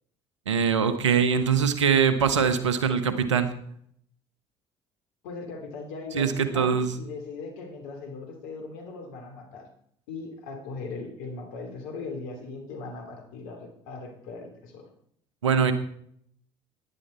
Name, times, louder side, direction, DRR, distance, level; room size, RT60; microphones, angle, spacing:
voice 1, 0.5-3.5 6.1-6.9 15.4-15.7, right 6 dB, 85° right, 11 dB, 1.1 m, -22 dB
voice 2, 5.2-9.7 10.1-14.9, left 3 dB, 70° left, 4 dB, 3.0 m, -39 dB
15.5 x 10.5 x 4.4 m, 0.66 s
hypercardioid pair, 60°, 15 cm